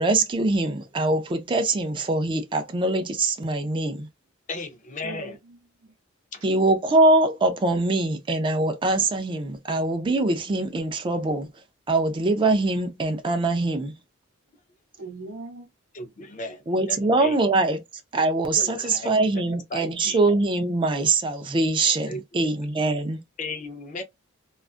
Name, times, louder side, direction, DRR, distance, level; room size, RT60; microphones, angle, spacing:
voice 1, 0.0-4.1 6.4-11.5 11.9-13.9 16.7-17.8 18.1-23.2, right 2 dB, 25° right, 0.4 m, -23 dB
voice 2, 4.5-5.4 6.3-6.4 15.9-17.7 18.6-19.1 19.7-20.2 22.1-22.4 23.4-24.0, left 2 dB, 40° left, 0.5 m, -35 dB
voice 3, 5.0-5.9 6.4-6.5 15.0-15.7 21.3-21.5, right 2 dB, 90° right, 1.0 m, -41 dB
2.4 x 2.3 x 2.4 m
head